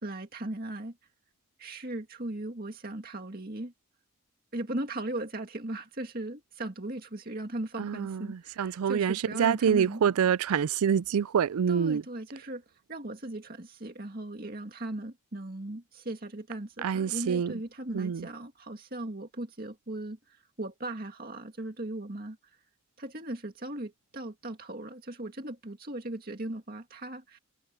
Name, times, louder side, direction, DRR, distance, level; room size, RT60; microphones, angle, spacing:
voice 1, 0.0-1.0 1.6-3.7 4.5-10.0 11.7-12.6 12.9-22.6 23.0-27.4, right 1 dB, 40° right, 2.2 m, -38 dB
voice 2, 7.8-12.0 16.8-17.5 17.9-18.3, right 7 dB, 85° right, 0.4 m, -26 dB
head